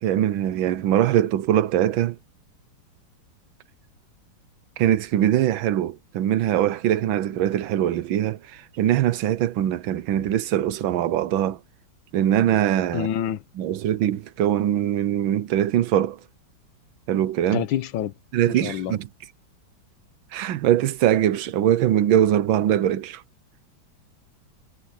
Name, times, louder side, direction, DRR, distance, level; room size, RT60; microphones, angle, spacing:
voice 1, 0.0-2.2 4.8-11.6 12.1-13.1 13.6-16.2 17.1-17.6 18.3-19.1 20.3-23.2, right 11 dB, 90° right, 1.6 m, -22 dB
voice 2, 12.9-13.4 17.5-18.1 18.5-18.9, left 10 dB, 80° left, 1.6 m, -27 dB
omnidirectional pair, 2.1 m